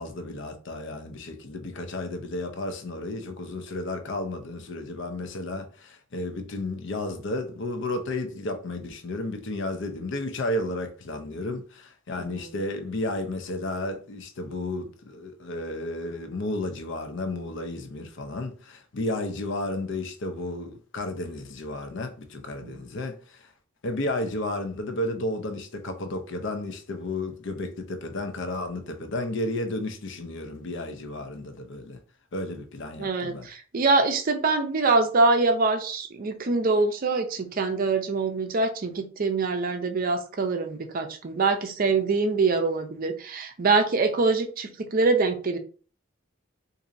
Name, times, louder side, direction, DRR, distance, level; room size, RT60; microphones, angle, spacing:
voice 1, 0.0-23.5 23.8-32.0 32.3-33.5, left 2 dB, 60° left, 0.6 m, -32 dB
voice 2, 12.2-12.6 22.6-22.8 33.0-45.6, right 3 dB, 45° right, 0.5 m, -24 dB
4.0 x 2.6 x 2.6 m
head